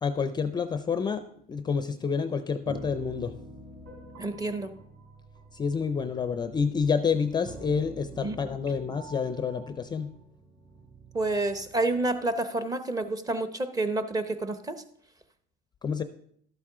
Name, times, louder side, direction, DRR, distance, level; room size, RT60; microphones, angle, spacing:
voice 1, 0.0-1.2 1.5-3.3 5.5-10.1 15.8-16.0, left 6 dB, 20° left, 10 dB, 0.5 m, -28 dB
sound 1, 2.6-12.2, right 2 dB, 45° right, 3.5 m, -47 dB
voice 2, 4.2-4.7 8.2-8.4 11.1-14.8, right 2 dB, 20° right, 10 dB, 0.8 m, -29 dB
12.0 x 8.5 x 3.7 m, 0.67 s
cardioid pair, 130°, 21 cm